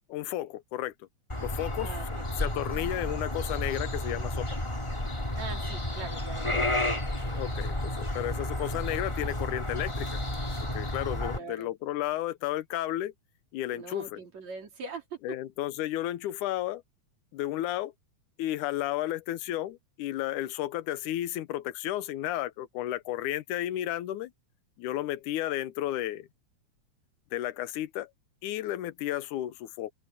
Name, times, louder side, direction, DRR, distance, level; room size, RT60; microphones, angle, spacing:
voice 1, 0.1-0.9 1.4-2.0 2.4-4.5 6.5-6.7 7.2-10.2 10.7-13.1 13.5-14.2 15.2-16.8 17.3-17.9 18.4-24.3 24.8-26.3 27.3-28.1 28.4-29.9, left 14 dB, 85° left, 2.3 m, -33 dB
sound 1, 1.3-11.4, left 1 dB, 10° left, 1.9 m, -32 dB
voice 2, 1.8-2.3 5.4-7.0 11.3-11.7 13.7-15.2, right 4 dB, 60° right, 5.1 m, -42 dB
open air
omnidirectional pair, 3.5 m